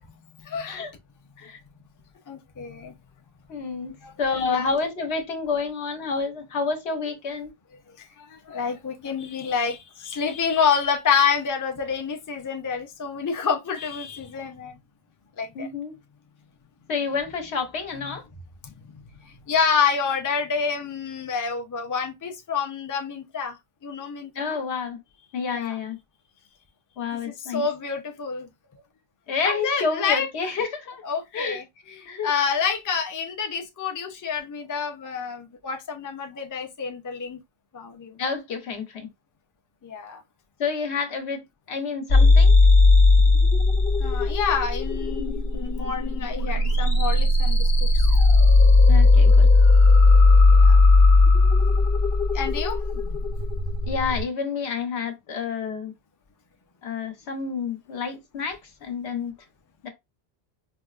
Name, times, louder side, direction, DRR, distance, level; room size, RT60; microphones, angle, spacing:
voice 1, 0.4-0.8 2.3-2.9 4.0-4.1 4.4-4.7 8.0-14.8 15.4-15.7 18.6-24.6 25.5-25.8 27.0-28.5 28.7-28.8 29.4-30.5 31.0-37.4 37.7-38.2 39.8-40.2 44.0-48.1 49.3-49.4 50.5-50.8 52.3-52.8, left 6 dB, 25° left, 0.4 m, -28 dB
voice 2, 3.5-3.9 4.2-7.5 15.5-15.9 16.9-18.2 24.3-25.0 25.3-26.0 27.0-27.7 29.3-31.0 31.3-31.6 32.1-32.3 38.2-39.1 40.6-41.4 41.7-42.5 48.9-49.5 53.9-55.9 56.8-59.3 59.8-59.9, left 5 dB, 80° left, 1.1 m, -29 dB
sound 1, 42.1-54.2, left 3 dB, 60° left, 0.9 m, -17 dB
4.6 x 2.1 x 2.3 m
omnidirectional pair, 1.1 m